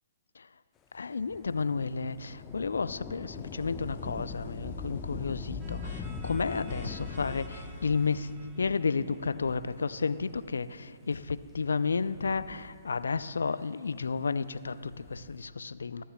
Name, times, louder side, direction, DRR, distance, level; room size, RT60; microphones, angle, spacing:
voice 1, 0.9-8.3 8.6-16.0, left 4 dB, 75° left, 0.3 m, -32 dB
Thunder / Rain, 1.2-10.1 10.9-11.0 11.9-13.2 14.7-15.5, left 4 dB, 20° left, 0.6 m, -42 dB
sound 1, 3.3-8.4, left 4 dB, 55° left, 1.1 m, -56 dB
sound 2, 5.6-10.2, right 2 dB, 15° right, 1.0 m, -54 dB
21.5 x 9.9 x 2.2 m
figure-of-eight pair, 125°, 0 cm